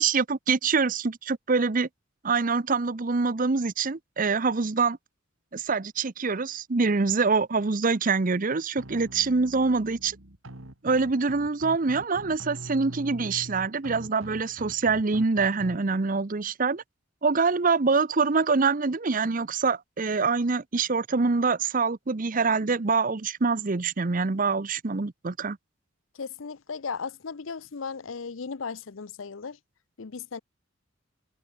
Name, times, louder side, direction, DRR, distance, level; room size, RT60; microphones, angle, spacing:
voice 1, 0.0-1.9 2.2-5.0 5.5-10.2 10.8-16.8 17.2-25.6, right 4 dB, 40° right, 0.7 m, -25 dB
sound 1, 8.8-15.8, right 1 dB, 85° right, 2.9 m, -43 dB
voice 2, 26.2-29.6 30.0-30.4, left 5 dB, 80° left, 0.7 m, -36 dB
head